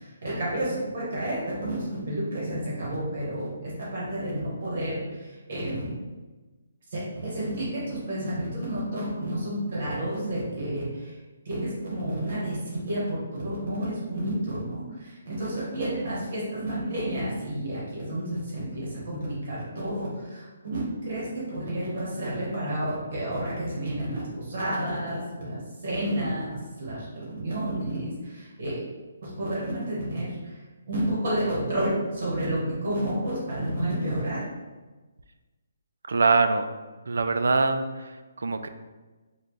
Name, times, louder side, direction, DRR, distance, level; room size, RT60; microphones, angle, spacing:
voice 1, 0.2-5.0 5.5-6.0 6.9-11.1 11.4-14.8 15.2-28.8 29.2-30.3 30.9-34.4, right 1 dB, 45° right, -6 dB, 1.3 m, -30 dB
voice 2, 36.1-36.6 37.1-38.1 38.4-38.7, right 4 dB, 80° right, 8 dB, 0.3 m, -23 dB
4.3 x 2.3 x 3.2 m, 1.2 s
hypercardioid pair, 175°, 0 cm